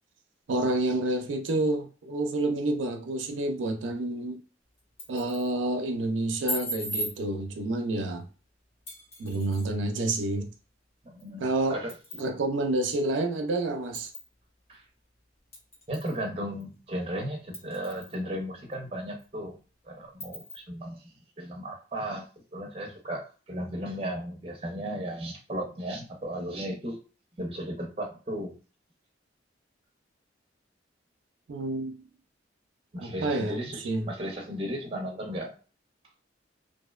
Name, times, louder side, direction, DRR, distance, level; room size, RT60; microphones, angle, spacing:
voice 1, 0.5-4.4 5.1-8.3 9.2-10.5 11.4-11.8 12.2-14.1 31.5-32.0 33.0-34.1, right 2 dB, 80° right, 0.4 m, -29 dB
sound 1, 4.8-5.5 6.5-7.2 8.9-9.7 11.2-11.3 11.9-12.3 12.9-13.0 13.9-14.3 15.5-16.2 16.6-16.7 17.5-18.2 18.7-18.8 19.2-19.3 20.2-20.6, equal, 35° left, 0.9 m, -37 dB
voice 2, 11.0-11.4 11.7-11.9 14.7-14.8 15.9-19.6 19.8-21.1 21.4-27.0 27.4-28.6 32.9-35.5, equal, 30° right, 0.5 m, -35 dB
2.6 x 2.0 x 2.3 m
head